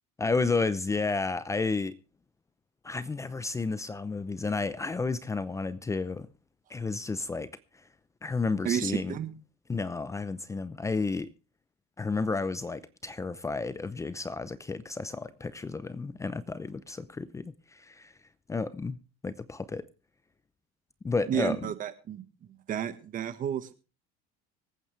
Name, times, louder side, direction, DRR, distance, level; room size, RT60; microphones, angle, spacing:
voice 1, 0.2-1.9 2.8-6.3 6.7-7.5 8.2-9.1 9.7-11.3 12.0-18.1 18.5-19.0 19.2-19.8 21.0-21.6, left 4 dB, 15° left, 15 dB, 0.7 m, -31 dB
voice 2, 8.6-9.3 21.3-23.7, right 9 dB, 45° right, 12 dB, 1.6 m, -32 dB
25.0 x 9.1 x 3.4 m, 0.32 s
cardioid pair, 120°, 20 cm